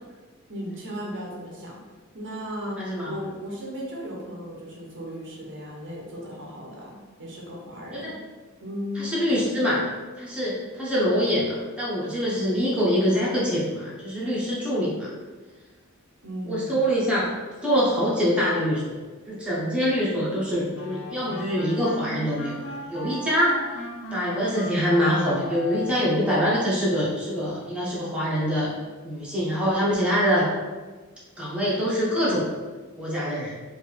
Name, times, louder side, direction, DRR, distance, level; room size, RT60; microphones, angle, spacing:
voice 1, 0.5-1.8 2.1-8.2 8.6-9.1 16.2-16.9, equal, 55° right, -3 dB, 0.9 m, -36 dB
voice 2, 2.8-3.1 7.9-8.1 9.0-9.8 10.2-15.1 16.5-17.3 17.6-18.8 19.3-23.6 24.1-28.7 29.0-30.5 31.4-32.5 33.0-33.5, equal, 5° right, -8 dB, 1.1 m, -24 dB
sound 1, 20.7-26.3, equal, 60° left, 0.8 m, -37 dB
4.6 x 2.8 x 3.4 m, 1.3 s
head